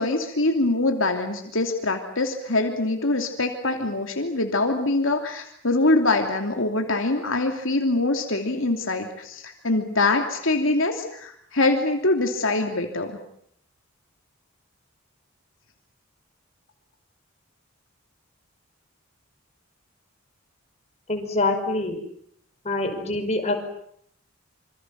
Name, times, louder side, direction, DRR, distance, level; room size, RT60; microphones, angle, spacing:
voice 1, 0.0-13.2, left 2 dB, 70° left, 3 dB, 2.9 m, -24 dB
voice 2, 21.1-22.0 22.6-23.5, left 2 dB, 30° left, 4 dB, 5.6 m, -25 dB
27.0 x 25.5 x 7.6 m, 0.69 s
head